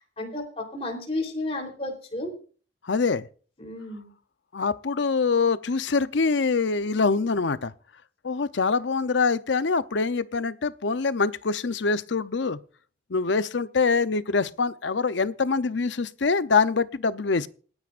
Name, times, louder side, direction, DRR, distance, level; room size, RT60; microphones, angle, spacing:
voice 1, 0.2-2.3 3.6-4.1, left 2 dB, 35° left, 3.6 m, -32 dB
voice 2, 2.8-3.3 4.5-7.7 8.2-12.6 13.1-17.5, left 4 dB, 90° left, 0.7 m, -24 dB
27.5 x 9.7 x 2.5 m
head